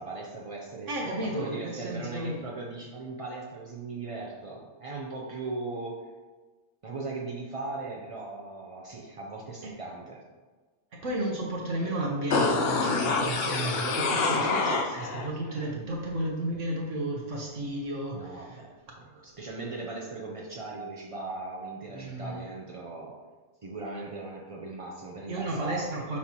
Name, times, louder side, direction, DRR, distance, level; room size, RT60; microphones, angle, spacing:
voice 1, 0.0-0.9 1.2-6.0 6.8-10.2 14.2-15.0 18.1-23.2 23.6-26.1, right 3 dB, 45° right, -3 dB, 0.4 m, -38 dB
voice 2, 0.9-2.3 9.6-9.7 11.0-18.6 19.1-19.2 21.9-22.4 25.3-26.2, right 1 dB, 65° right, -2 dB, 1.2 m, -33 dB
sound 1, 12.3-15.3 15.6-15.7, left 3 dB, 55° left, 0.7 m, -26 dB
6.3 x 5.6 x 2.9 m, 1.3 s
omnidirectional pair, 1.4 m